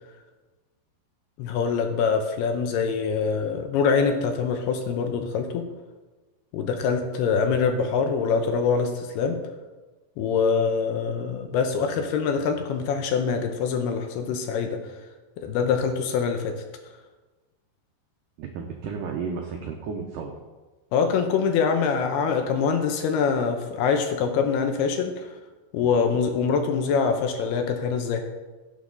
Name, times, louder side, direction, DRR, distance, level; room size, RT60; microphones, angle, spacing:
voice 1, 1.4-5.6 6.5-9.4 10.2-14.8 15.4-16.5 20.9-25.1 25.7-28.2, left 5 dB, 75° left, 5 dB, 2.7 m, -24 dB
voice 2, 18.4-20.4 25.8-25.9, right 5 dB, 85° right, 2 dB, 1.9 m, -33 dB
16.5 x 7.0 x 4.0 m, 1.2 s
omnidirectional pair, 5.0 m